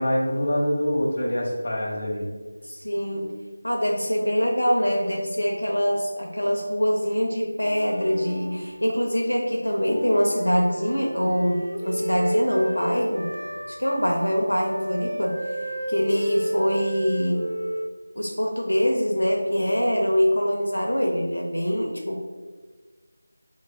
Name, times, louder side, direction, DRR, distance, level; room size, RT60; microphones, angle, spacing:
voice 1, 0.0-2.3, equal, 45° left, -3 dB, 1.1 m, -25 dB
voice 2, 2.6-3.3 3.6-13.3 13.7-15.4 15.9-17.4 18.2-22.3, equal, 90° left, 0 dB, 0.7 m, -24 dB
sound 1, 7.6-9.3 9.9-17.9, right 1 dB, 80° right, 0.5 m, -32 dB
6.2 x 3.1 x 2.3 m, 1.4 s
figure-of-eight pair, 170°, 0 cm